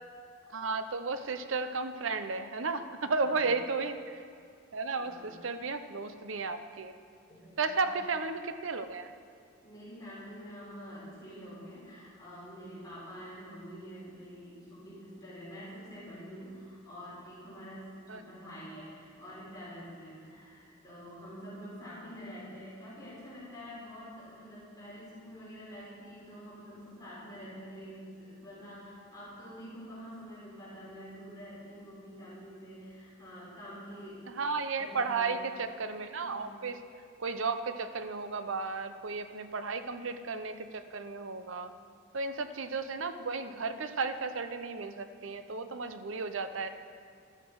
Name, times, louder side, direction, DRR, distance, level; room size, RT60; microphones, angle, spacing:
voice 1, 0.5-4.2 4.7-6.9 7.6-9.1 18.1-18.2 34.3-36.8 37.2-41.7 42.1-46.7, right 4 dB, 70° right, 10 dB, 0.7 m, -34 dB
voice 2, 3.1-3.5 5.0-5.4 7.3-7.9 9.6-34.3 34.8-35.4 36.2-36.6, equal, 20° left, -8 dB, 4.2 m, -47 dB
13.0 x 12.5 x 4.7 m, 2.3 s
head